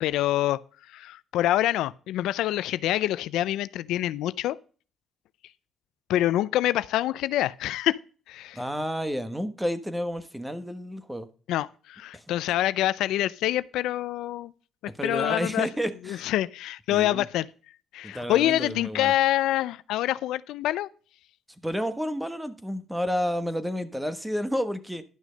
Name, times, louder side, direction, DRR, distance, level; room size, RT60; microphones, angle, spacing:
voice 1, 0.0-0.6 0.9-4.6 6.1-8.0 8.3-8.6 11.5-14.5 15.0-15.7 16.1-17.5 17.9-20.9, left 14 dB, 90° left, 0.4 m, -26 dB
voice 2, 8.5-11.3 12.1-12.2 15.0-16.3 16.9-17.3 18.0-19.1 21.6-25.1, equal, 5° right, 1.3 m, -30 dB
11.5 x 6.3 x 5.1 m
cardioid pair, 90°, 0 cm